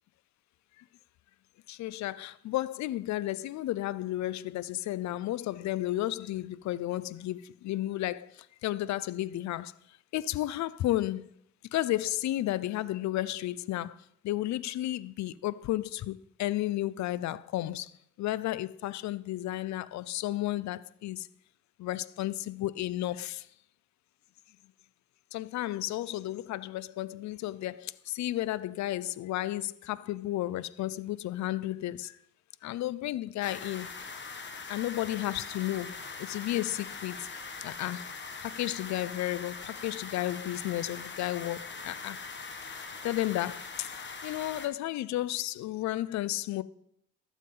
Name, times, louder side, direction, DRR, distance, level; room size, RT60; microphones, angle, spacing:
voice 1, 1.7-9.7 10.1-11.3 11.7-17.9 18.2-21.3 21.8-23.5 25.3-32.2 32.6-33.9 34.7-37.3 37.6-38.1 38.4-42.2 43.0-43.9 44.2-46.6, left 15 dB, 65° left, 0.5 m, -33 dB
sound 1, 33.4-44.7, left 4 dB, 40° left, 1.3 m, -42 dB
12.5 x 7.2 x 3.8 m
cardioid pair, 90°, 30 cm